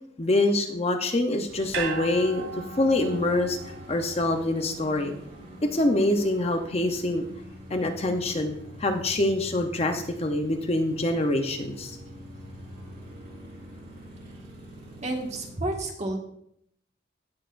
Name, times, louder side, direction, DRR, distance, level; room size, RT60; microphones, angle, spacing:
voice 1, 0.2-2.5 2.8-3.6 3.9-5.1 5.6-7.2 7.7-8.5 8.8-11.9, left 1 dB, 30° left, 5 dB, 0.7 m, -25 dB
sound 1, 1.5-15.5, equal, 50° right, 4.2 m, -44 dB
sound 2, 1.7-6.1 6.4-6.5, right 5 dB, 80° right, 2.4 m, -38 dB
voice 2, 15.0-16.2, right 2 dB, 35° right, 0 dB, 1.7 m, -30 dB
17.0 x 6.6 x 2.5 m, 0.71 s
head